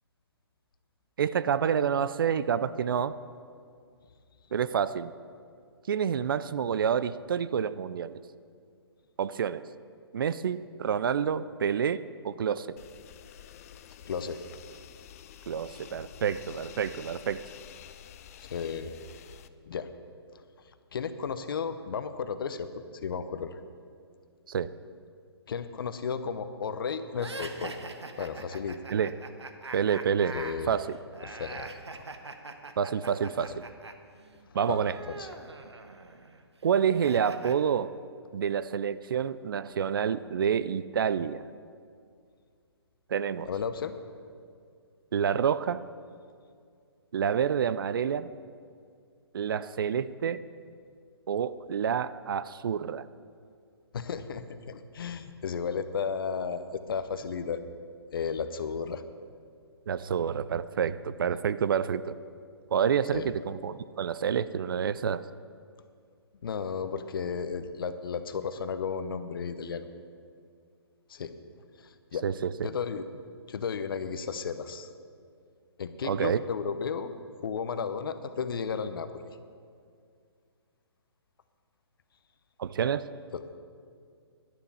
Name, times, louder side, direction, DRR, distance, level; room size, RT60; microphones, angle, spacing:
voice 1, 1.2-3.2 4.5-5.1 5.9-8.1 9.2-9.6 10.1-12.7 15.5-17.4 24.5-24.7 28.9-29.2 29.7-30.4 30.7-31.0 32.8-33.7 34.5-35.0 36.6-37.9 38.3-41.4 43.1-43.5 45.1-45.8 47.1-48.3 49.3-50.4 51.3-53.0 59.9-62.2 62.7-65.2 72.2-72.7 76.0-76.4 82.6-83.1, right 7 dB, 55° right, 16 dB, 0.4 m, -28 dB
sound 1, 12.8-19.5, left 10 dB, 35° left, 0.4 m, -49 dB
voice 2, 14.0-14.4 18.4-18.9 19.7-19.9 20.3-20.4 20.9-22.7 23.0-23.6 25.5-27.7 28.2-28.8 30.3-30.7 31.2-32.0 34.7-35.3 43.4-44.0 53.9-57.6 58.1-59.0 63.1-63.3 66.4-69.9 71.1-71.3 71.8-72.2 72.6-73.1 73.5-74.9 75.8-77.1 77.4-79.4 83.3-83.4, left 6 dB, 55° left, 11 dB, 0.8 m, -34 dB
sound 2, 27.1-33.9 34.2-37.5, right 3 dB, 85° right, 1.0 m, -43 dB
11.5 x 10.0 x 5.5 m, 2.2 s
figure-of-eight pair, 135°, 14 cm